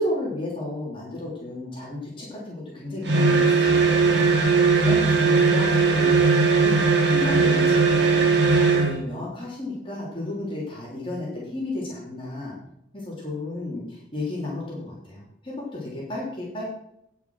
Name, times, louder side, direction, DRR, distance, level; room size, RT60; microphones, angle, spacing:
voice 1, 0.0-4.3 4.7-6.1 6.6-6.8 7.1-12.5 12.9-16.6, left 1 dB, 25° left, -5 dB, 3.1 m, -33 dB
sound 1, 3.0-9.0, right 4 dB, 60° right, 1.7 m, -19 dB
9.5 x 7.1 x 6.2 m, 0.78 s
head